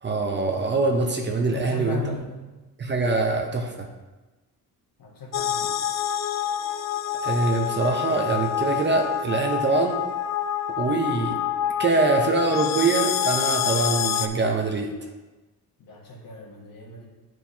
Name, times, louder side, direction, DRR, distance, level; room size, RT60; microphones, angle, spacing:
voice 1, 0.0-2.0 2.8-3.9 7.2-10.0 10.7-11.4 11.8-14.9, right 3 dB, 30° right, 2 dB, 0.7 m, -24 dB
voice 2, 1.5-2.3 5.0-5.7 15.8-17.1, left 3 dB, 60° left, -2 dB, 1.6 m, -36 dB
sound 1, 5.3-14.3, left 10 dB, 45° left, 0.4 m, -27 dB
9.6 x 4.6 x 2.8 m, 1.2 s
cardioid pair, 130°, 38 cm